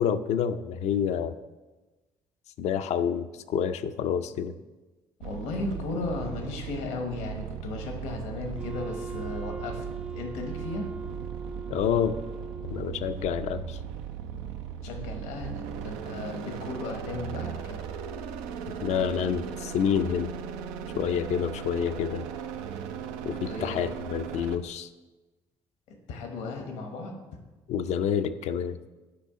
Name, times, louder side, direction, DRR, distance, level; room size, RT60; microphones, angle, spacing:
voice 1, 0.0-1.3 2.6-4.5 11.7-12.2 12.7-13.8 18.8-20.3 21.0-22.2 23.2-24.9 27.7-28.8, left 8 dB, 70° left, 11 dB, 0.4 m, -28 dB
voice 2, 5.2-9.8 10.1-10.9 14.8-17.8 23.3-23.8 25.9-27.2, left 3 dB, 85° left, 3 dB, 1.1 m, -36 dB
sound 1, 5.2-24.6, right 8 dB, 90° right, 0.4 m, -37 dB
Wind instrument woodwind instrument, 8.5-13.3, right 4 dB, 10° right, 0.4 m, -40 dB
8.5 x 4.9 x 3.7 m, 1.2 s
supercardioid pair, 65°, 12 cm